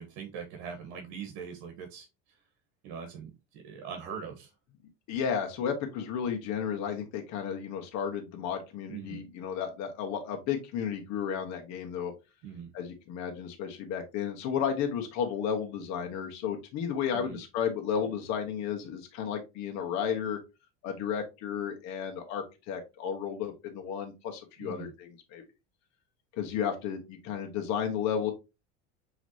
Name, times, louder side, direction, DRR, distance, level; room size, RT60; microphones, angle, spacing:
voice 1, 0.0-2.1 2.8-4.5 8.9-9.2 12.4-12.7 17.1-17.4 24.6-24.9, right 6 dB, 75° right, 4 dB, 1.2 m, -41 dB
voice 2, 5.1-12.1 12.7-20.4 20.8-25.4 26.3-28.3, left 7 dB, 60° left, 3 dB, 1.2 m, -33 dB
6.1 x 3.2 x 2.7 m, 0.26 s
supercardioid pair, 110°, 31 cm